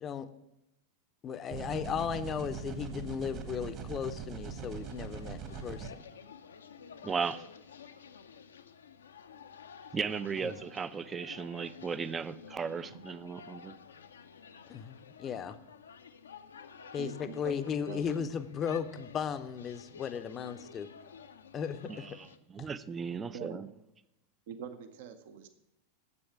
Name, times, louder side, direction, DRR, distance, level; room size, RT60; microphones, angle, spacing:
voice 1, 1.2-6.0 10.4-10.6 14.7-15.6 16.9-20.9 21.5-22.1 22.6-22.7, left 7 dB, 25° left, 0.6 m, -36 dB
sound 1, 1.5-5.9, right 7 dB, 35° right, 1.4 m, -41 dB
sound 2, 4.4-22.4, left 6 dB, 70° left, 0.5 m, -52 dB
voice 2, 7.0-7.4 9.9-13.7 21.9-22.3 22.5-23.7, right 6 dB, 20° right, 0.4 m, -36 dB
voice 3, 17.0-17.6 17.9-18.3 23.3-23.6 24.5-25.5, right 7 dB, 55° right, 0.7 m, -43 dB
9.7 x 7.8 x 5.8 m
figure-of-eight pair, 90°, 0 cm